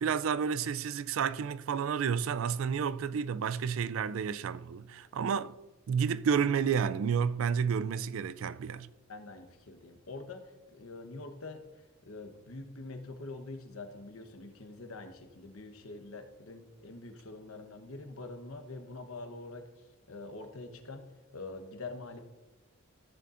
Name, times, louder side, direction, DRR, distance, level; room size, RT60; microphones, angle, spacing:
voice 1, 0.0-5.6 5.9-8.9, right 7 dB, 70° right, 0.3 m, -30 dB
voice 2, 9.1-19.7 20.1-21.1 21.3-22.2, left 3 dB, 85° left, 1.1 m, -45 dB
14.0 x 6.8 x 2.5 m
head